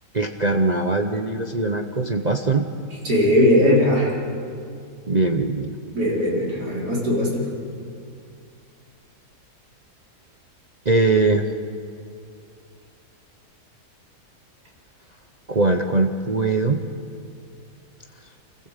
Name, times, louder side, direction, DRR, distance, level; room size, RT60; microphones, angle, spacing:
voice 1, 0.1-2.6 5.1-5.7 10.8-11.5 15.5-16.8, right 3 dB, 35° right, 4 dB, 0.8 m, -21 dB
voice 2, 3.0-4.1 5.9-7.5, left 1 dB, 80° right, -5 dB, 5.2 m, -19 dB
27.5 x 15.5 x 8.2 m, 2.4 s
omnidirectional pair, 1.7 m